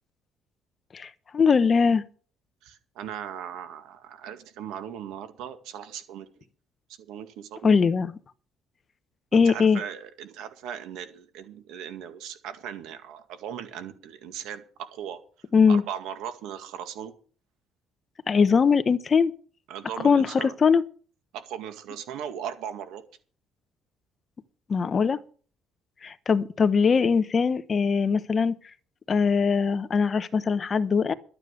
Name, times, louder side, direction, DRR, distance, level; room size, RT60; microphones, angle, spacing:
voice 1, 0.9-2.0 7.6-8.1 9.3-9.8 15.5-15.8 18.3-19.3 20.0-20.8 24.7-25.2 26.0-28.6 29.1-31.1, left 5 dB, 35° left, 0.9 m, -21 dB
voice 2, 2.6-6.3 7.1-7.8 9.3-15.2 15.7-17.1 19.7-20.6 21.3-23.0, right 9 dB, 85° right, 2.0 m, -38 dB
12.0 x 9.0 x 6.6 m
cardioid pair, 115°, 0 cm